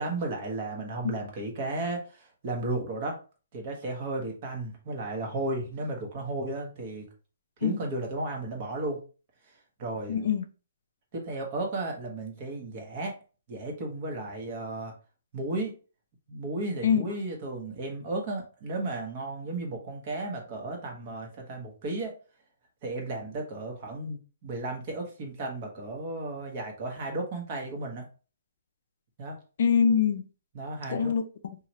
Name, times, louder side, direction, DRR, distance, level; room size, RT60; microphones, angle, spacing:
voice 1, 0.0-3.2 3.5-7.1 7.6-9.0 9.8-10.2 11.1-13.1 13.5-14.9 15.3-15.7 16.3-22.2 22.8-28.1 29.2-29.4 30.5-31.1, right 2 dB, 35° right, 0.9 m, -34 dB
voice 2, 10.1-10.5 16.8-17.1 29.6-30.3 30.9-31.6, left 7 dB, 65° left, 0.4 m, -24 dB
3.0 x 2.4 x 2.8 m
hypercardioid pair, 160°, 0 cm